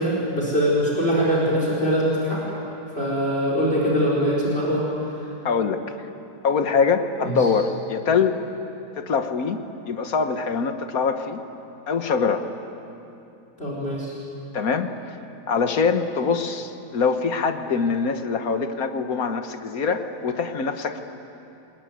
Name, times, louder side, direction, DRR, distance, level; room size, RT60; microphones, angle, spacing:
voice 1, 0.0-2.4 3.0-4.8 7.2-7.5 13.6-14.1, equal, 35° left, -5 dB, 4.9 m, -22 dB
voice 2, 5.5-5.8 6.4-8.4 9.0-9.6 9.9-11.4 11.9-12.5 14.5-14.9 15.5-21.0, left 5 dB, 60° left, 7 dB, 1.8 m, -23 dB
28.0 x 21.5 x 9.5 m, 2.8 s
omnidirectional pair, 1.8 m